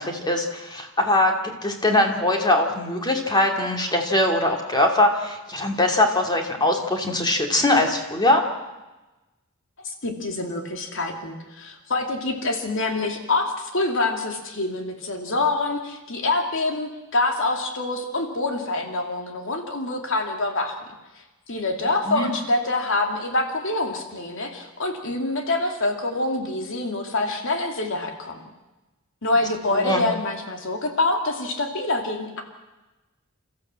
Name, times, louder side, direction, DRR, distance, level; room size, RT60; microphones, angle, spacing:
voice 1, 0.0-1.3 1.6-8.4 22.1-22.3 29.7-30.0, left 1 dB, 20° left, 3 dB, 2.7 m, -21 dB
voice 2, 9.8-20.7 21.5-28.4 29.2-32.4, left 2 dB, 60° left, 3 dB, 2.7 m, -26 dB
28.5 x 14.5 x 7.6 m, 1.1 s
head